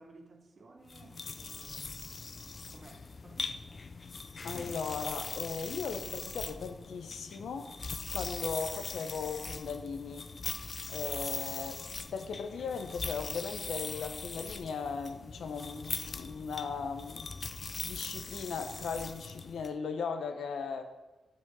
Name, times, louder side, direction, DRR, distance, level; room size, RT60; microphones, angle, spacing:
voice 1, 0.0-2.1 2.7-3.9, right 3 dB, 45° right, 1.0 m, -55 dB
sound 1, 0.9-19.7, left 4 dB, 40° left, 0.4 m, -41 dB
voice 2, 4.4-7.7 8.1-10.3 10.9-11.8 12.1-17.3 17.8-20.8, left 5 dB, 90° left, 0.7 m, -37 dB
8.3 x 5.1 x 5.4 m
wide cardioid pair, 110°, 0 cm